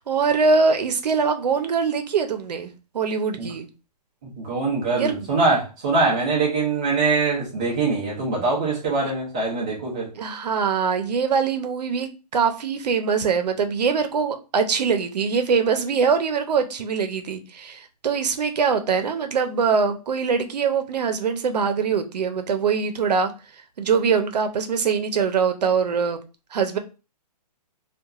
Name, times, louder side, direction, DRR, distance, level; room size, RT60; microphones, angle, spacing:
voice 1, 0.1-2.7 2.9-3.7 4.9-5.3 10.2-23.3 23.8-26.2 26.5-26.8, right 5 dB, 75° right, 0.6 m, -23 dB
voice 2, 4.2-10.1, right 3 dB, 10° right, 0.3 m, -23 dB
2.9 x 2.3 x 2.3 m
hypercardioid pair, 170°, 21 cm